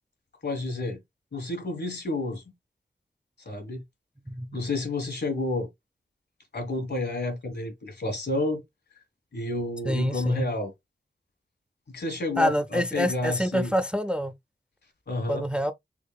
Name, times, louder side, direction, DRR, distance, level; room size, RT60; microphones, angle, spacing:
voice 1, 0.4-1.0 1.3-2.4 3.4-3.8 4.5-5.7 6.5-8.6 9.3-10.7 11.9-13.7 15.1-15.4, left 2 dB, 65° left, 1.3 m, -30 dB
voice 2, 4.3-4.6 9.8-10.5 12.4-14.3 15.3-15.7, equal, 5° right, 0.4 m, -26 dB
3.6 x 3.5 x 2.3 m
wide cardioid pair, 60°, 19 cm